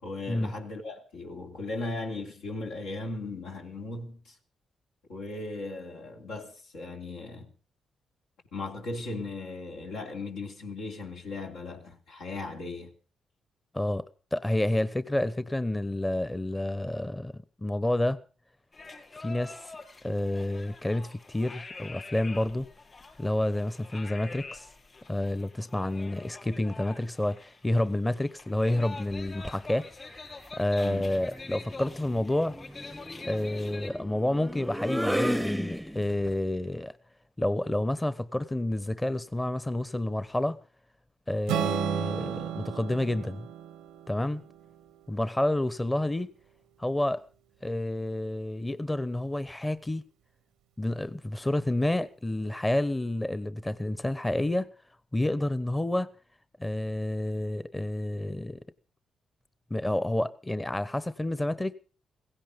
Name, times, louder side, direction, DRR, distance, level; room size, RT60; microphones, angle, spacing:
voice 1, 0.0-4.4 5.1-7.5 8.5-12.9 30.8-31.1, left 2 dB, 85° left, 3.2 m, -37 dB
voice 2, 13.7-14.0 14.3-18.2 19.2-19.6 20.0-22.7 23.2-24.7 25.1-29.9 30.1-30.2 30.5-32.5 33.2-36.9 37.4-40.6 41.3-43.5 44.1-44.4 45.1-46.3 46.8-47.2 47.6-50.0 50.8-54.7 55.1-56.1 56.6-58.6 59.7-61.7, left 1 dB, 20° left, 0.9 m, -29 dB
sound 1, 18.7-33.9, left 3 dB, 40° left, 5.3 m, -46 dB
sound 2, 29.1-29.7 31.0-36.3, equal, 5° right, 0.7 m, -34 dB
Strum, 41.5-45.7, right 11 dB, 90° right, 0.8 m, -34 dB
16.5 x 15.5 x 5.2 m
supercardioid pair, 50°, 0 cm